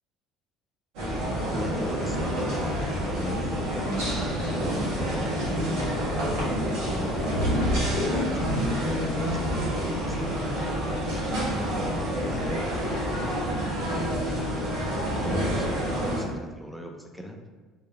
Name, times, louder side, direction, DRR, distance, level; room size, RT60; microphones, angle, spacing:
sound 1, 0.9-16.2, equal, 80° right, 1.3 m, -28 dB
voice 1, 1.5-6.4 6.6-11.0 11.5-13.0 13.5-17.4, left 1 dB, ahead, 2 dB, 0.6 m, -39 dB
sound 2, 7.2-9.6, left 1 dB, 90° left, 1.0 m, -28 dB
3.6 x 2.7 x 3.3 m, 1.3 s
supercardioid pair, 85°, 0 cm